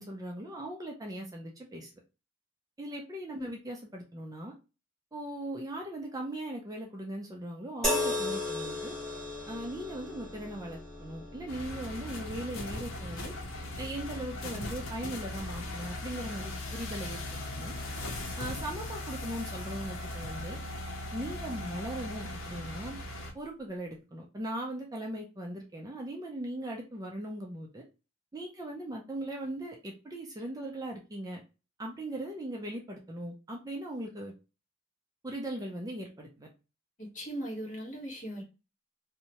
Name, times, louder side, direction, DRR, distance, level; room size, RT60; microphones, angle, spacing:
voice 1, 0.0-1.9 2.8-4.5 5.1-8.9 9.5-13.3 13.8-17.7 18.4-20.6 21.1-23.0 23.3-27.8 28.3-31.4 31.8-34.3 35.2-36.5, right 1 dB, 20° right, 0.4 m, -39 dB
sound 1, 7.8-21.2 22.1-22.3, left 2 dB, 5° left, 1.0 m, -39 dB
sound 2, 11.5-23.3, left 1 dB, 85° left, 0.7 m, -39 dB
voice 2, 37.0-38.4, right 1 dB, 40° left, 1.1 m, -39 dB
2.7 x 2.1 x 2.9 m
head